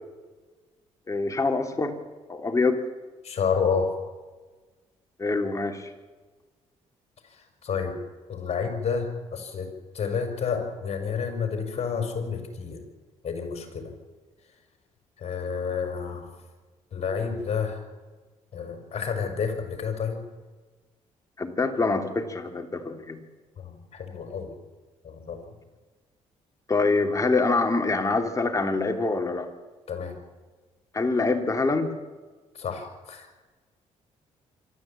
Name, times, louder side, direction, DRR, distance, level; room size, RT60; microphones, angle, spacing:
voice 1, 1.1-2.0 2.3-2.8 5.2-5.9 21.4-23.2 26.7-29.5 30.9-31.9, left 3 dB, 25° left, 5 dB, 3.3 m, -25 dB
voice 2, 3.2-3.9 7.2-7.9 8.3-9.7 9.9-12.8 13.2-13.9 15.2-16.3 16.9-17.8 18.5-20.2 23.6-24.6 25.0-25.6 29.9-30.2 32.5-33.3, left 6 dB, 55° left, 6 dB, 5.5 m, -30 dB
25.5 x 13.0 x 8.9 m, 1.3 s
cardioid pair, 75°, 13 cm